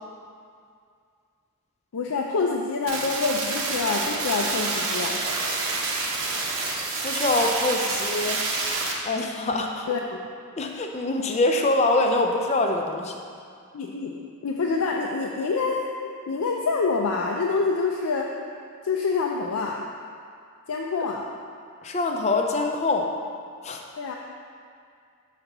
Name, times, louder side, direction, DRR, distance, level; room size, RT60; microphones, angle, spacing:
voice 1, 1.9-5.2 9.9-10.2 13.7-15.9 16.3-18.3 18.8-19.8 20.7-21.3 24.0-24.2, left 4 dB, 80° left, -1 dB, 0.5 m, -26 dB
sound 1, 2.9-8.9, right 3 dB, 70° right, 0.9 m, -28 dB
voice 2, 7.0-8.4 9.0-9.9 10.6-13.2 21.8-23.1 23.6-23.8, left 2 dB, 30° left, 3 dB, 0.5 m, -24 dB
6.7 x 4.0 x 5.9 m, 2.3 s
head